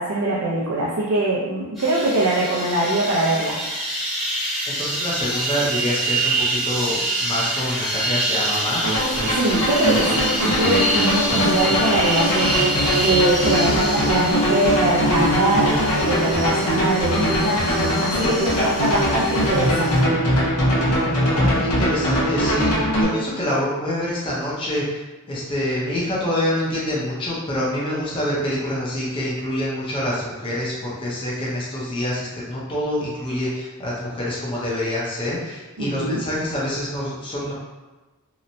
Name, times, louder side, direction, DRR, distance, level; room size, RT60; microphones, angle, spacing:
voice 1, 0.0-3.6 9.2-12.6 13.0-15.7 16.0-17.7 18.0-20.2 35.8-36.2, right 2 dB, 70° right, -6 dB, 0.5 m, -22 dB
sound 1, 1.8-20.0, right 1 dB, ahead, 0.9 m, -26 dB
voice 2, 4.7-8.9 11.3-11.7 21.3-25.0 25.3-37.5, left 1 dB, 25° left, -6 dB, 0.5 m, -26 dB
sound 2, 8.8-23.0, equal, 90° left, 0.8 m, -21 dB
2.9 x 2.1 x 2.6 m, 1.2 s
head